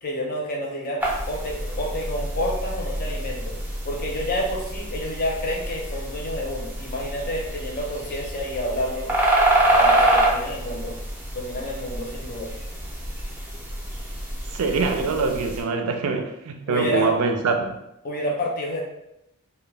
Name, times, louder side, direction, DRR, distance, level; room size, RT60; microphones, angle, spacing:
voice 1, 0.0-3.6 3.8-9.1 9.7-11.0 11.3-12.5 16.7-17.1 18.0-18.8, left 1 dB, 45° left, -1 dB, 0.6 m, -29 dB
sound 1, 1.0-15.6, right 1 dB, 10° right, 0.4 m, -26 dB
voice 2, 14.5-17.8, right 4 dB, 85° right, 5 dB, 0.4 m, -24 dB
2.2 x 2.1 x 3.2 m, 0.85 s
head